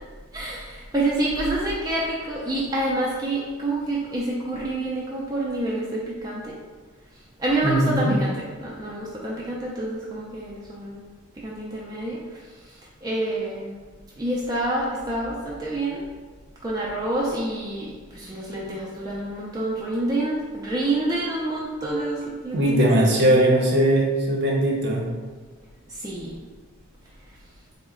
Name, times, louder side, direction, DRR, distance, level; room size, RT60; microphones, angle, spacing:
voice 1, 0.3-6.6 7.4-11.0 11.4-12.4 12.6-13.7 14.2-16.0 16.6-22.9 25.9-26.4, right 1 dB, 15° right, -5 dB, 0.3 m, -28 dB
voice 2, 7.6-8.2 22.5-25.0, right 1 dB, 50° right, -2 dB, 0.7 m, -19 dB
3.9 x 2.1 x 3.5 m, 1.5 s
head